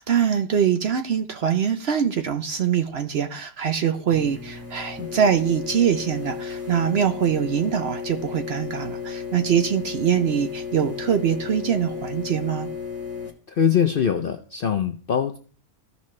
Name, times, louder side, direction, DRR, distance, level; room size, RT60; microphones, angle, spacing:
voice 1, 0.0-12.7, right 8 dB, 60° right, 7 dB, 0.7 m, -23 dB
sound 1, 4.1-13.3, left 6 dB, 10° right, 1.2 m, -34 dB
voice 2, 13.5-15.4, left 8 dB, 60° left, 5 dB, 0.6 m, -22 dB
15.0 x 5.2 x 3.2 m, 0.41 s
omnidirectional pair, 1.5 m